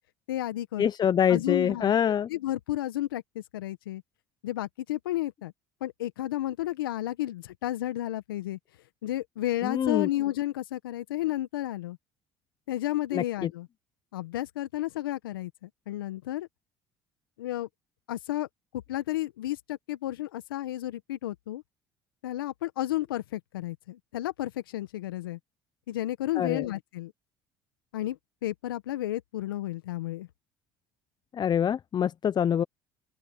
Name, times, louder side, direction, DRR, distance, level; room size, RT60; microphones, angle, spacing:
voice 1, 0.3-0.9 1.3-4.0 4.4-5.5 5.8-8.6 9.0-12.0 12.7-13.7 14.1-16.5 17.4-17.7 18.1-18.5 18.9-21.6 22.2-25.4 25.9-27.1 27.9-30.3, left 14 dB, 85° left, 1.4 m, -32 dB
voice 2, 0.8-2.3 9.6-10.1 13.1-13.5 26.4-26.7 31.3-32.6, left 8 dB, 40° left, 0.6 m, -25 dB
open air
hypercardioid pair, 65°, 11 cm